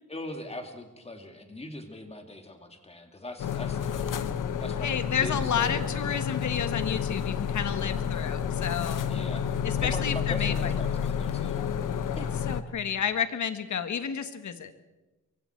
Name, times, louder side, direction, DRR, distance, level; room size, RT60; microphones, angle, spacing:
voice 1, 0.1-4.2 4.6-6.1 9.0-9.5 9.8-11.7 12.2-12.3, left 2 dB, 20° left, 5 dB, 2.4 m, -40 dB
sound 1, 3.4-12.6, left 7 dB, 80° left, 1.1 m, -30 dB
voice 2, 4.8-9.0 9.6-10.7 12.2-14.7, left 7 dB, 65° left, 10 dB, 1.5 m, -31 dB
25.0 x 23.5 x 4.5 m, 1.1 s
wide cardioid pair, 150°, 31 cm